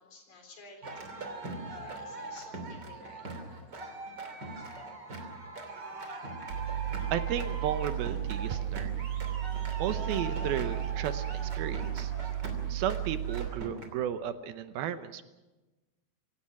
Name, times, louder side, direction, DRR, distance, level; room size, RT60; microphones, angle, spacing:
voice 1, 0.0-3.3, left 3 dB, 60° left, 4 dB, 5.6 m, -53 dB
sound 1, 0.8-13.9, right 2 dB, 30° right, 3.1 m, -41 dB
Mechanical fan, 6.5-13.5, right 11 dB, 50° right, 2.4 m, -34 dB
voice 2, 7.1-8.9 9.8-12.1 12.7-15.2, right 10 dB, 75° right, 11 dB, 2.7 m, -34 dB
25.0 x 17.5 x 6.1 m, 1.1 s
omnidirectional pair, 4.5 m